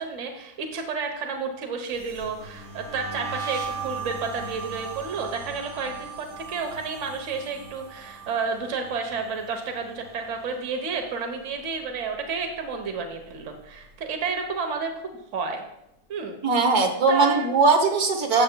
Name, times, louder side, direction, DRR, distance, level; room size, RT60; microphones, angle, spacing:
voice 1, 0.0-15.6 16.1-16.4 17.1-17.5, right 5 dB, 50° right, 4 dB, 1.3 m, -31 dB
sound 1, 1.9-11.1 11.4-11.8 12.1-13.7, right 5 dB, 85° right, 2.7 m, -39 dB
voice 2, 16.4-18.4, right 4 dB, 70° right, 2 dB, 1.6 m, -20 dB
13.0 x 7.6 x 2.3 m, 0.81 s
omnidirectional pair, 1.7 m